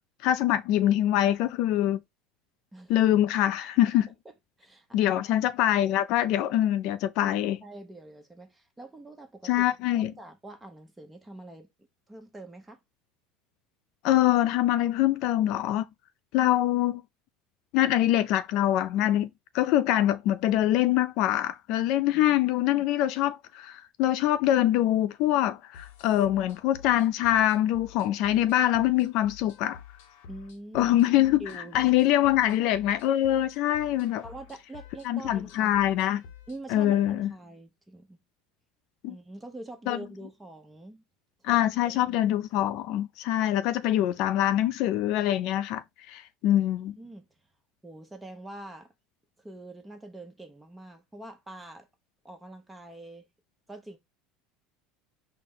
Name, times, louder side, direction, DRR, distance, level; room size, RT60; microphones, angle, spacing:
voice 1, 0.2-2.0 2.9-4.1 4.9-7.6 9.4-10.1 14.0-15.9 16.3-17.0 17.7-19.3 19.5-29.8 30.7-31.5 31.7-34.2 35.1-36.2 36.7-37.3 39.0-39.1 39.9-40.0 41.4-46.9, left 13 dB, 60° left, 0.3 m, -24 dB
voice 2, 4.2-5.2 7.2-7.4 7.6-9.7 9.9-11.7 12.1-12.8 22.1-22.4 22.6-22.8 30.3-30.9 31.4-32.3 34.2-35.8 36.5-38.2 39.0-41.0 41.5-42.2 46.5-46.7 47.0-47.3 47.8-48.9 49.4-51.9 52.2-53.3 53.7-54.0, right 1 dB, 10° right, 0.9 m, -45 dB
sound 1, 25.7-36.6, left 7 dB, 90° left, 0.7 m, -49 dB
4.1 x 2.1 x 3.7 m
supercardioid pair, 125°, 0 cm